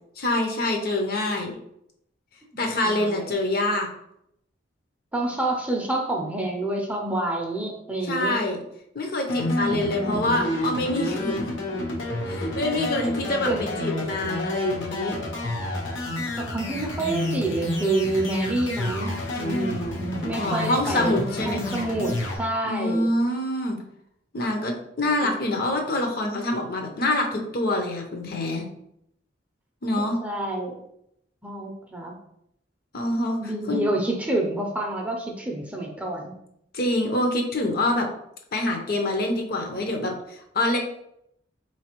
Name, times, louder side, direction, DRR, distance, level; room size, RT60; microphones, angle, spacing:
voice 1, 0.2-1.5 2.6-3.9 8.0-8.6 8.9-11.5 12.3-15.2 20.3-21.8 22.6-23.8 24.3-28.7 29.8-30.2 32.9-33.8 36.7-38.1 38.5-40.8, left 1 dB, 55° left, 2 dB, 0.7 m, -26 dB
voice 2, 2.8-3.3 5.1-8.4 13.5-13.6 16.2-21.2 21.5-23.1 25.2-25.3 29.9-30.8 31.4-32.1 33.4-36.3, right 2 dB, 10° right, 0 dB, 0.5 m, -28 dB
sound 1, 9.3-22.4, left 1 dB, 90° left, 0.9 m, -29 dB
4.2 x 3.2 x 2.9 m, 0.76 s
head